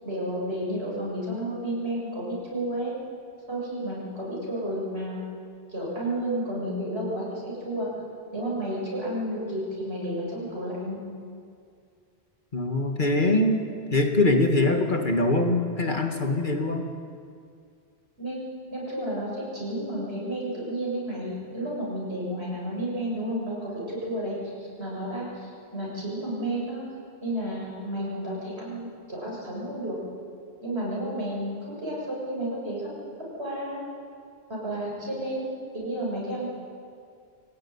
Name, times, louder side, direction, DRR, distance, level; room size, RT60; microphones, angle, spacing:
voice 1, 0.0-2.9 3.5-5.2 5.7-7.9 8.3-11.0 18.2-18.4 18.7-24.5 24.8-26.8 27.2-29.9 30.6-32.9 33.4-33.8 34.5-35.5 35.7-36.5, right 1 dB, 80° right, -5 dB, 8.2 m, -31 dB
voice 2, 12.5-13.7 13.9-16.9, left 2 dB, 50° left, 3 dB, 2.1 m, -23 dB
23.5 x 17.5 x 9.7 m, 2.3 s
omnidirectional pair, 1.1 m